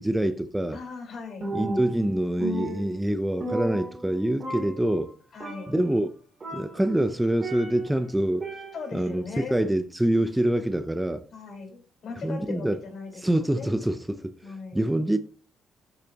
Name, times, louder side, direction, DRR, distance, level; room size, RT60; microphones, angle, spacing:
voice 1, 0.0-0.8 1.5-5.1 5.7-6.1 6.5-8.5 8.9-11.2 12.2-12.8 13.1-14.3 14.7-15.2, right 1 dB, 10° right, 0.6 m, -25 dB
voice 2, 0.7-1.8 5.3-5.7 8.7-9.6 11.3-13.8 14.4-14.9, left 5 dB, 60° left, 4.5 m, -39 dB
Percussion, 1.4-2.1 2.4-4.2 4.4-5.1 5.4-5.9 6.4-8.0 8.4-9.1, right 1 dB, 40° right, 3.3 m, -35 dB
13.5 x 7.1 x 2.9 m
cardioid pair, 90°, 0 cm